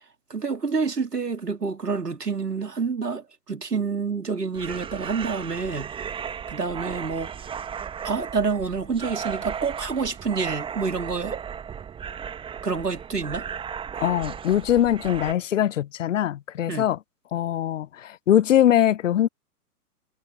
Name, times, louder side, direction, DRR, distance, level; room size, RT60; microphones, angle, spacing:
voice 1, 0.3-6.0 6.5-7.3 8.0-11.4 12.6-13.5 16.7-16.9, right 5 dB, 80° right, 3.1 m, -28 dB
sound 1, 4.5-15.3, right 7 dB, 10° right, 1.6 m, -35 dB
voice 2, 14.0-17.0 17.3-19.3, left 11 dB, 50° left, 0.8 m, -22 dB
figure-of-eight pair, 115°, 47 cm